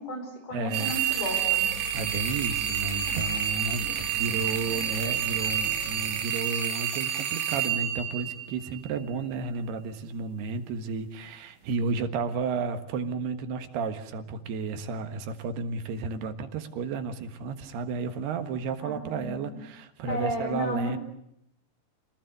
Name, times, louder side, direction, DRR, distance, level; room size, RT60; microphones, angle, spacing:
voice 1, 0.0-1.7 3.1-3.2 3.8-4.0 4.3-5.3 18.8-19.6 20.1-21.0, equal, 45° left, 5 dB, 5.7 m, -35 dB
voice 2, 0.5-0.9 1.9-21.0, right 4 dB, 90° right, 7 dB, 3.6 m, -32 dB
sound 1, 0.7-6.2, equal, 30° right, 4.8 m, -42 dB
sound 2, 0.7-8.9, right 9 dB, 60° right, 3.0 m, -29 dB
26.5 x 19.0 x 8.0 m, 0.76 s
omnidirectional pair, 4.5 m